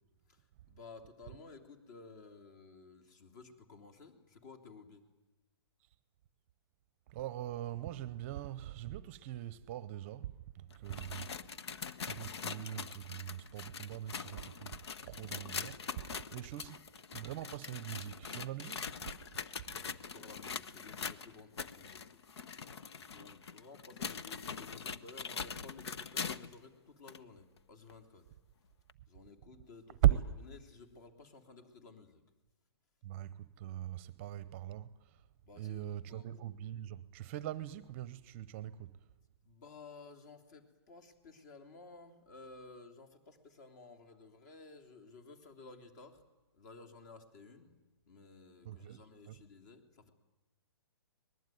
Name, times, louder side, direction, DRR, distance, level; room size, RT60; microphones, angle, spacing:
voice 1, 0.3-5.0 11.3-11.4 16.2-16.5 19.7-22.1 23.0-28.2 29.1-30.2 30.4-32.2 35.4-36.3 39.4-46.2 46.5-47.7 48.1-50.1, left 3 dB, 40° left, 3.3 m, -55 dB
voice 2, 7.1-11.3 12.0-14.8 15.0-18.9 30.0-30.2 33.0-35.3 35.6-39.0 48.6-49.4, right 13 dB, 30° right, 0.7 m, -39 dB
sound 1, 10.7-26.6 27.1-27.2 27.9-28.0 28.9-29.0, left 6 dB, 75° left, 1.2 m, -43 dB
24.0 x 20.5 x 9.3 m
hypercardioid pair, 160°, 14 cm